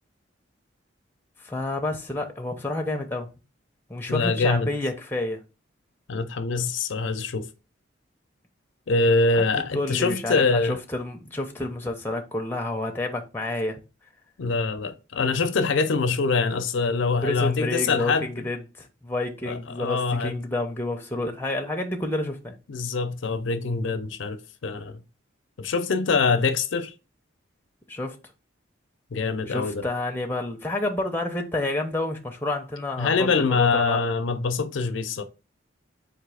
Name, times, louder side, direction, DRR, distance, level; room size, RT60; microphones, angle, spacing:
voice 1, 1.4-3.3 3.9-5.4 9.7-13.8 17.2-22.5 27.9-28.2 29.5-34.0, left 2 dB, 10° left, 0.6 m, -29 dB
voice 2, 4.1-4.7 6.1-7.5 8.9-10.8 14.4-18.4 19.5-20.4 22.7-25.0 25.6-26.9 29.1-29.8 33.0-35.2, left 4 dB, 70° left, 0.5 m, -24 dB
4.0 x 2.6 x 4.8 m
head